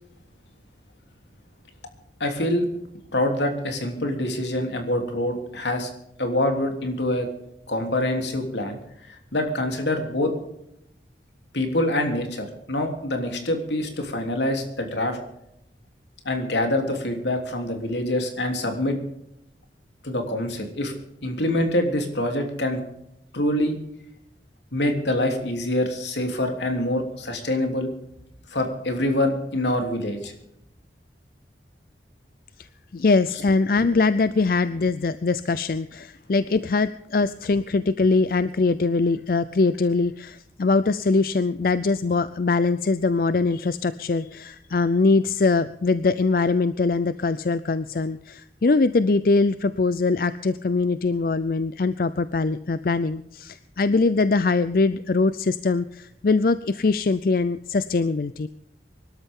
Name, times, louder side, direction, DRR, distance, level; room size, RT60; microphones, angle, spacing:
voice 1, 2.2-2.7 3.1-5.9 6.2-7.3 7.7-8.8 9.1-10.3 11.5-15.2 16.2-19.0 20.0-20.9 21.2-22.8 23.3-23.8 24.7-27.9 28.5-30.3, left 1 dB, 80° left, 4 dB, 3.2 m, -25 dB
voice 2, 32.9-58.5, left 3 dB, 50° left, 14 dB, 0.5 m, -22 dB
24.0 x 12.5 x 3.7 m, 0.80 s
head